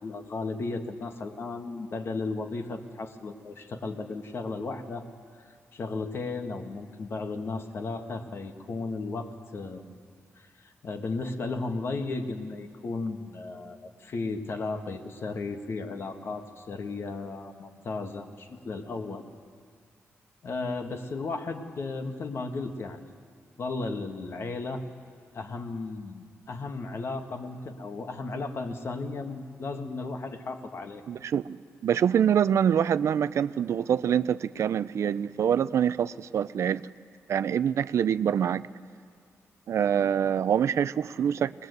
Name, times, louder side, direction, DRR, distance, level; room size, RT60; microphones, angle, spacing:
voice 1, 0.0-5.1 5.7-9.8 10.4-10.5 10.8-19.2 20.4-23.0 23.6-24.8 25.3-31.0, left 3 dB, 55° left, 5 dB, 1.7 m, -35 dB
voice 2, 31.1-31.6 31.8-36.8 37.3-38.7 39.7-41.5, right 8 dB, 70° right, 16 dB, 0.5 m, -25 dB
21.0 x 20.5 x 8.1 m, 2.1 s
wide cardioid pair, 125°, 5 cm